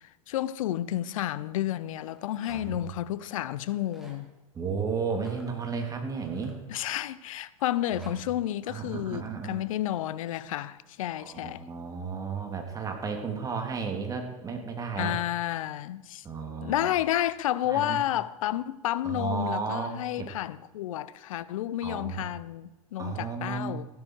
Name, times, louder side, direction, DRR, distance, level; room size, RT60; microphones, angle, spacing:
voice 1, 0.3-4.3 6.7-11.6 15.0-16.2 16.6-23.9, left 13 dB, 70° left, 0.8 m, -31 dB
Rattle, 2.1-2.9 3.6-4.2 5.1-7.1 7.6-8.1, right 1 dB, ahead, 3.7 m, -53 dB
voice 2, 4.5-6.6 8.7-9.6 11.2-15.2 16.2-16.9 17.7-18.0 19.0-20.3 21.8-22.3 23.0-23.8, right 5 dB, 20° right, 2.8 m, -33 dB
15.0 x 12.5 x 4.7 m
hypercardioid pair, 120°, 18 cm